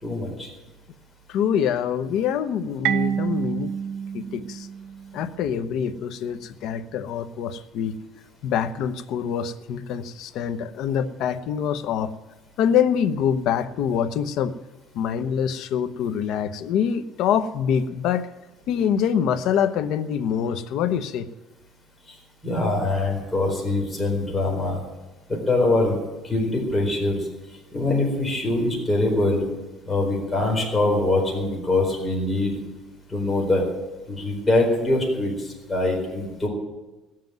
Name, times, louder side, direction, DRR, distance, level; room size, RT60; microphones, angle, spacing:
voice 1, 0.0-0.5 22.4-24.8 25.3-26.0 26.2-27.2 27.7-29.4 29.9-32.6 33.1-33.7 34.1-35.3 35.7-36.5, left 2 dB, 15° left, -1 dB, 4.5 m, -23 dB
voice 2, 1.3-3.7 4.1-4.7 5.1-7.9 8.4-12.1 12.6-14.5 14.9-18.3 18.7-21.3, left 8 dB, 70° left, 11 dB, 0.9 m, -25 dB
Marimba xylophone, 2.8-5.5, right 8 dB, 65° right, 0.7 m, -28 dB
17.5 x 7.7 x 9.3 m, 1.1 s
cardioid pair, 140°, 0 cm